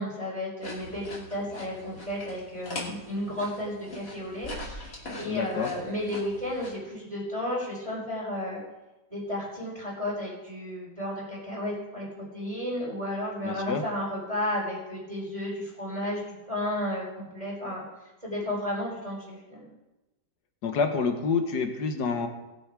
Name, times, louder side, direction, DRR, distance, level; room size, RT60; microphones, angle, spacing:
voice 1, 0.0-8.6 9.1-12.1 12.3-17.8 18.2-19.7, left 1 dB, 20° right, -6 dB, 4.2 m, -33 dB
sound 1, 0.6-6.7, left 1 dB, 50° left, 2.9 m, -42 dB
voice 2, 5.2-5.7 13.4-13.8 20.6-22.3, left 5 dB, 75° left, 6 dB, 1.8 m, -28 dB
19.5 x 7.1 x 4.8 m, 1.1 s
omnidirectional pair, 1.8 m